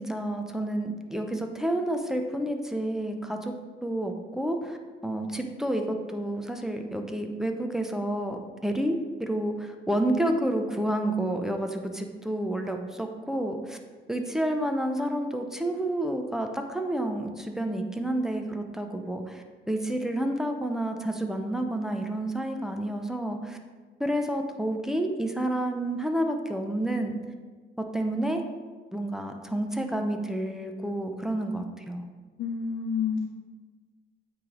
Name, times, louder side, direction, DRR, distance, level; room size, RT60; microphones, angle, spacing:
voice 1, 0.0-3.5 3.8-4.8 5.0-13.8 14.1-23.6 24.0-27.2 27.8-28.4 28.9-32.0, right 1 dB, ahead, 4 dB, 0.6 m, -29 dB
voice 2, 32.4-33.2, left 6 dB, 70° left, -2 dB, 0.8 m, -29 dB
8.6 x 3.4 x 3.8 m, 1.4 s
cardioid pair, 90°, 20 cm